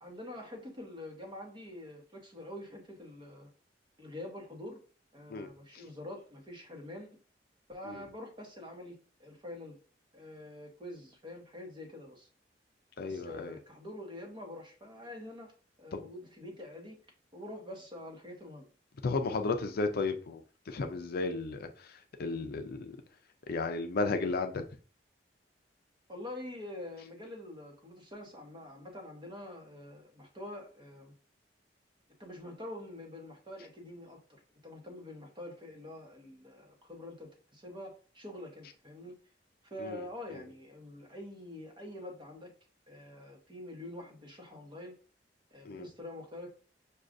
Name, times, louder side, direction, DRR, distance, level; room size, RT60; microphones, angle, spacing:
voice 1, 0.0-3.5 4.0-4.8 5.1-7.1 7.7-9.8 10.1-12.3 13.0-15.5 15.8-17.0 17.3-18.7 26.1-31.1 32.2-39.1 39.6-42.5 42.9-44.9 45.5-46.5, left 1 dB, 25° right, 1.0 m, -46 dB
voice 2, 13.0-13.5 15.9-16.0 19.0-20.4 20.7-21.7 22.2-22.9 23.5-24.6 39.8-40.0 45.7-45.8, left 3 dB, 55° left, 0.4 m, -33 dB
6.2 x 2.3 x 2.5 m
head